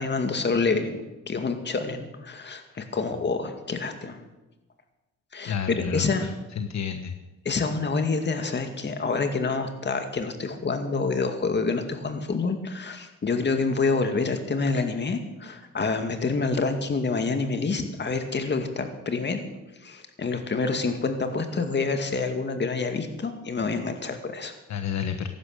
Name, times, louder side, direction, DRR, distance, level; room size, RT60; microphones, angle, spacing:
voice 1, 0.0-4.2 5.3-6.2 7.4-19.5 19.8-24.5, left 4 dB, 35° left, 6 dB, 2.2 m, -27 dB
voice 2, 5.4-7.1 24.7-25.3, left 7 dB, 65° left, 7 dB, 1.2 m, -30 dB
15.0 x 12.0 x 6.7 m, 1.0 s
cardioid pair, 90°, 30 cm